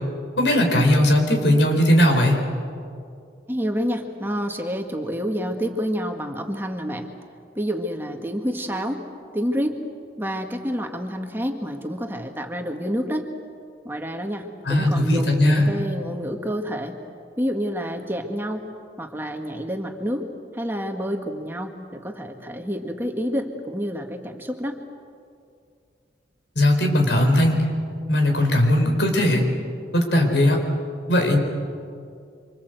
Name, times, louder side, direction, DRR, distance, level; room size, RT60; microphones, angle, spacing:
voice 1, 0.4-2.4 14.6-15.7 26.6-27.6 28.1-29.5 29.9-30.6 31.1-31.4, left 1 dB, 85° left, 3 dB, 4.5 m, -18 dB
voice 2, 3.5-7.1 7.6-9.0 9.3-9.8 10.2-13.3 13.9-17.0 17.4-18.7 19.0-20.3 20.5-24.7, equal, 10° right, 3 dB, 1.8 m, -28 dB
26.5 x 26.5 x 8.1 m, 2.4 s
head